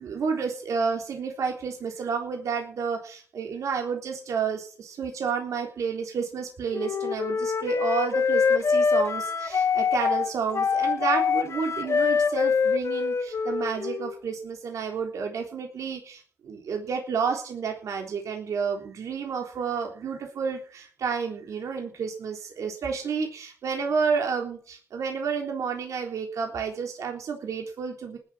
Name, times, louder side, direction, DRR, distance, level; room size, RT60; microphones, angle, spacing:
voice 1, 0.0-28.2, right 6 dB, 80° right, 2 dB, 3.6 m, -30 dB
Wind instrument woodwind instrument, 6.7-14.2, left 5 dB, 60° left, 2.4 m, -24 dB
19.5 x 8.2 x 6.2 m, 0.42 s
cardioid pair, 65°, 5 cm